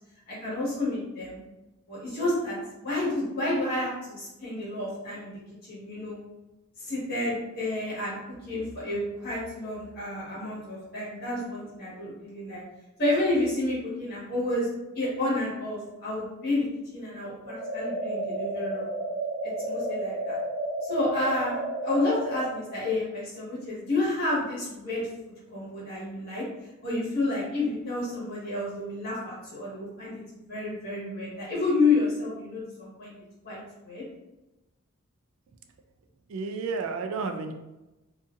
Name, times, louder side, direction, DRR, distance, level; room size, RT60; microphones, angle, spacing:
voice 1, 0.3-1.4 1.9-6.2 6.8-8.2 8.4-12.6 13.0-14.7 14.9-18.9 19.4-20.4 20.8-21.6 21.8-26.4 26.8-33.1 33.4-33.6 33.8-34.0, left 2 dB, 45° left, -7 dB, 1.4 m, -30 dB
sound 1, 17.5-22.5, right 1 dB, 50° right, 1.0 m, -31 dB
voice 2, 36.3-37.5, right 4 dB, 70° right, 6 dB, 0.3 m, -31 dB
2.7 x 2.5 x 2.5 m, 1.0 s
head